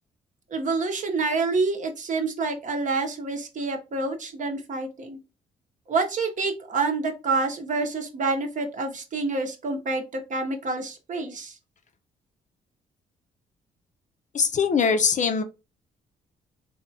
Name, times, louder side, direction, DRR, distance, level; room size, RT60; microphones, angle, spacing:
voice 1, 0.5-5.2 5.9-11.5, right 3 dB, 45° right, 4 dB, 0.7 m, -27 dB
voice 2, 14.3-15.4, left 6 dB, 45° left, 8 dB, 0.5 m, -22 dB
3.4 x 2.2 x 2.6 m, 0.29 s
supercardioid pair, 60°, 17 cm